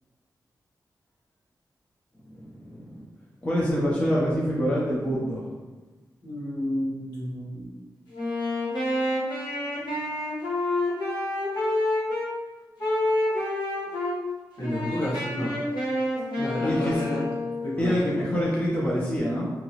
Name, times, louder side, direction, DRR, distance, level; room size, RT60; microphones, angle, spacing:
voice 1, 2.3-3.1 3.4-5.5 16.6-17.0 17.8-19.5, equal, 15° left, -5 dB, 0.5 m, -26 dB
voice 2, 6.2-7.7 14.6-15.5 16.3-17.2 17.6-18.0, left 1 dB, 60° left, -8 dB, 1.3 m, -30 dB
Wind instrument woodwind instrument, 8.1-12.3 12.8-14.2 14.6-17.8, left 1 dB, 85° left, 1.0 m, -28 dB
2.9 x 2.7 x 2.8 m, 1.3 s
wide cardioid pair, 140°, 7 cm